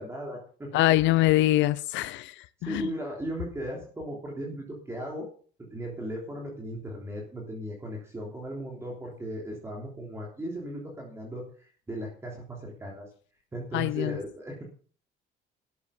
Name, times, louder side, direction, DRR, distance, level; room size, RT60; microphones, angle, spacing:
voice 1, 0.0-1.0 2.6-5.3 5.7-13.1 13.5-14.6, right 1 dB, 15° right, 3.4 m, -37 dB
voice 2, 0.7-2.3 2.6-2.9 13.7-14.2, left 16 dB, 80° left, 0.8 m, -23 dB
13.0 x 8.6 x 7.1 m
cardioid pair, 160°, 19 cm